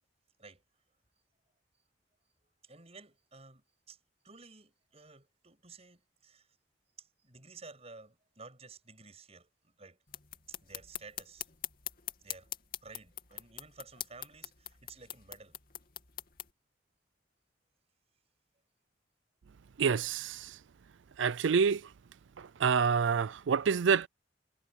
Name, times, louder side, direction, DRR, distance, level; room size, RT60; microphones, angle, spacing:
voice 1, 2.6-4.0 4.2-6.6 7.0-10.0 10.5-11.5 12.2-12.5 12.8-15.6, right 4 dB, 35° right, 7.2 m, -53 dB
sound 1, 10.1-16.5, left 12 dB, 50° left, 2.7 m, -44 dB
voice 2, 19.8-20.5 21.2-21.8 22.4-24.1, right 6 dB, 80° right, 0.4 m, -27 dB
head